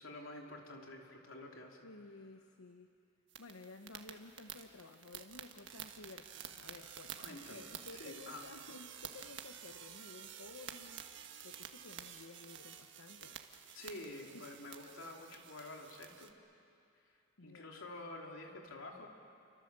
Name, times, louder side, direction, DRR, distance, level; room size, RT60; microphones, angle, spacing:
voice 1, 0.0-1.9 7.2-7.7 7.9-8.5 13.7-16.3 17.0-17.1 17.4-19.1, left 2 dB, 70° left, 1 dB, 3.3 m, -49 dB
voice 2, 1.8-2.9 3.4-11.1 11.4-13.4 14.3-14.5 17.4-17.8, left 3 dB, 85° left, 6 dB, 1.0 m, -54 dB
sound 1, 3.3-16.3, right 9 dB, 60° right, 1.5 m, -51 dB
29.5 x 25.0 x 7.5 m, 2.6 s
head